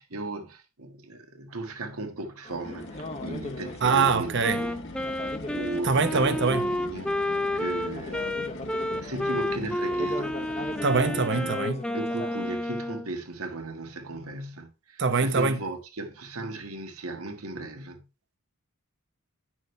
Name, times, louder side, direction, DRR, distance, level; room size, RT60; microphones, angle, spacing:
voice 1, 0.0-4.8 5.5-11.5 11.9-18.1, right 2 dB, 80° right, 1.5 m, -37 dB
sound 1, 2.4-12.6, left 2 dB, 30° left, 0.8 m, -39 dB
sound 2, 2.5-11.3, left 2 dB, 55° left, 1.2 m, -43 dB
voice 2, 3.8-4.6 5.8-6.7 10.8-11.8 15.0-15.6, right 4 dB, 55° right, 0.9 m, -23 dB
Wind instrument woodwind instrument, 4.4-13.1, left 1 dB, 5° left, 0.4 m, -30 dB
9.6 x 6.2 x 3.2 m
head